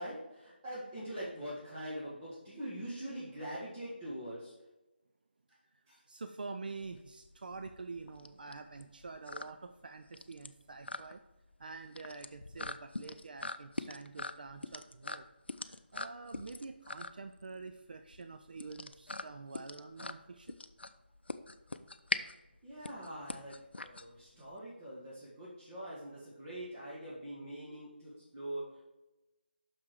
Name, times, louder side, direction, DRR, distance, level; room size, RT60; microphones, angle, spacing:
voice 1, 0.0-4.5 5.9-6.0 22.6-28.8, right 1 dB, 20° right, -9 dB, 1.7 m, -43 dB
voice 2, 6.1-11.2 11.6-15.3 15.6-20.6, right 4 dB, 55° right, 7 dB, 0.5 m, -47 dB
sound 1, 6.8-24.6, left 2 dB, 75° left, 0.5 m, -43 dB
6.1 x 6.0 x 4.6 m, 1.0 s
figure-of-eight pair, 160°, 6 cm